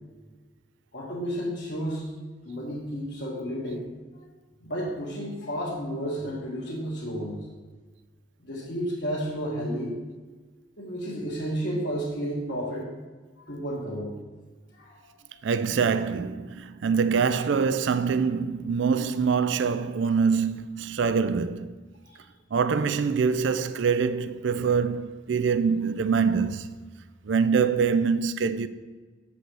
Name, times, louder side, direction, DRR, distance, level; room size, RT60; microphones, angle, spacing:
voice 1, 0.9-2.1 2.4-3.9 4.6-7.5 8.4-9.9 10.8-12.9 13.4-14.2 14.7-15.0 22.0-22.2, equal, 60° left, 1.7 m, -32 dB
voice 2, 15.4-21.8 22.5-26.7 27.2-28.7, right 5 dB, 75° right, 0.4 m, -24 dB
7.9 x 7.0 x 4.7 m
head